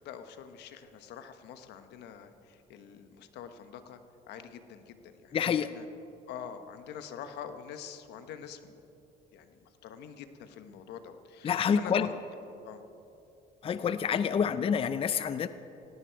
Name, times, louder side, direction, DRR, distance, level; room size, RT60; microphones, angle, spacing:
voice 1, 0.0-4.0 4.3-5.4 5.7-5.8 6.3-8.8 9.3-12.2 12.7-12.8 14.3-14.4, left 8 dB, 80° left, 9 dB, 1.1 m, -45 dB
voice 2, 5.3-5.7 11.4-12.1 13.6-15.5, left 7 dB, 35° left, 12 dB, 0.5 m, -27 dB
18.0 x 17.0 x 4.6 m, 2.9 s
cardioid pair, 110°, 17 cm